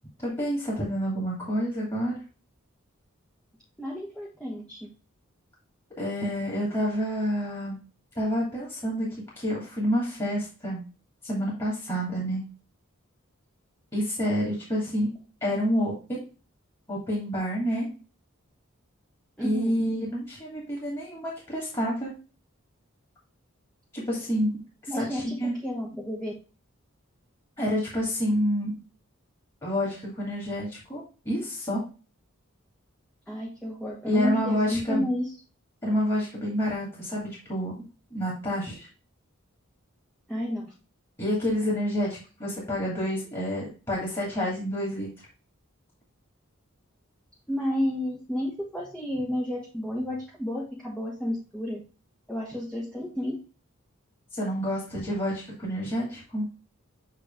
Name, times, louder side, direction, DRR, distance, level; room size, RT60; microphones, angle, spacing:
voice 1, 0.2-2.2 6.0-7.8 8.1-9.1 9.4-10.8 11.2-12.4 13.9-15.1 15.4-16.2 16.9-17.9 19.4-22.1 23.9-24.5 25.0-25.5 27.6-28.7 29.6-31.8 34.1-35.1 35.8-37.7 38.1-38.9 41.2-45.1 54.3-56.5, equal, 20° left, -5 dB, 2.6 m, -28 dB
voice 2, 3.8-4.9 19.4-19.8 24.9-26.3 33.3-35.3 40.3-40.7 47.5-51.8 52.3-53.4, left 1 dB, 5° left, -3 dB, 1.2 m, -31 dB
8.4 x 3.3 x 3.4 m, 0.34 s
head